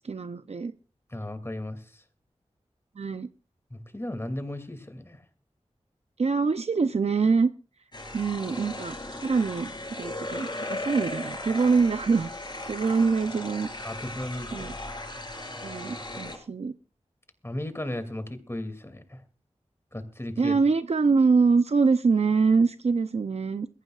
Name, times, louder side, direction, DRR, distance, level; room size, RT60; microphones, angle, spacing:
voice 1, 0.0-0.7 3.0-3.3 6.2-7.5 8.1-12.3 12.7-13.7 14.5-14.7 15.6-16.7 20.4-23.7, right 4 dB, 65° right, 10 dB, 0.6 m, -24 dB
voice 2, 1.1-2.0 3.7-5.2 13.8-14.7 17.4-19.2 19.9-20.6, left 1 dB, 20° left, 9 dB, 2.6 m, -35 dB
sound 1, 7.9-16.4, left 1 dB, 40° left, 4.3 m, -37 dB
22.0 x 15.0 x 2.4 m, 0.35 s
wide cardioid pair, 55°, 12 cm